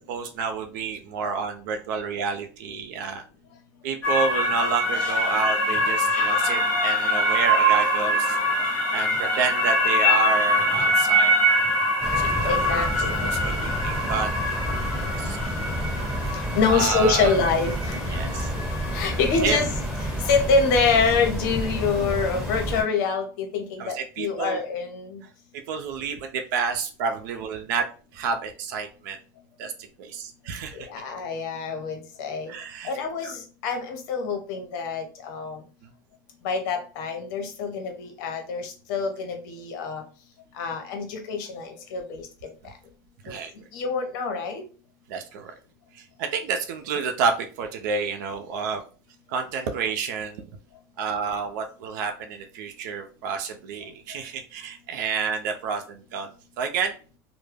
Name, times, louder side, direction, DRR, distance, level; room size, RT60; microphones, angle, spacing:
voice 1, 0.1-3.2 3.8-8.4 8.9-11.5 12.2-12.7 13.2-14.3 15.0-15.4 16.7-17.3 18.1-18.5 19.4-19.6 23.8-24.6 25.7-27.9 28.1-29.2 29.6-29.7 30.0-30.9 32.5-33.0 33.2-33.3 43.2-43.7 45.1-45.5 45.9-48.8 49.3-50.4 51.0-56.3 56.6-56.9, right 5 dB, 80° right, 5 dB, 0.4 m, -29 dB
sound 1, 4.0-20.4, equal, 15° left, 0.9 m, -24 dB
sound 2, 12.0-22.8, equal, 5° right, 1.3 m, -30 dB
voice 2, 12.4-13.1 16.6-17.9 18.9-19.7 20.3-25.2 30.7-32.5 32.8-33.4 33.6-35.6 36.4-40.0 40.6-42.2 43.7-44.6, left 4 dB, 70° left, 4 dB, 0.7 m, -25 dB
2.2 x 2.0 x 3.2 m, 0.36 s
supercardioid pair, 120°, 10 cm